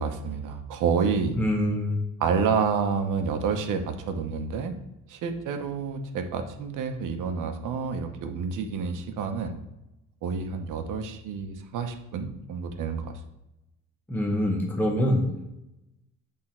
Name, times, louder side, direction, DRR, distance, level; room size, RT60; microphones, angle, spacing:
voice 1, 0.0-1.4 2.2-4.7 5.1-9.6 10.2-13.2, right 5 dB, 75° right, 6 dB, 0.9 m, -29 dB
voice 2, 1.4-2.0 14.1-15.4, left 1 dB, 5° left, 0 dB, 0.8 m, -25 dB
7.8 x 3.7 x 4.3 m, 0.92 s
cardioid pair, 165°, 31 cm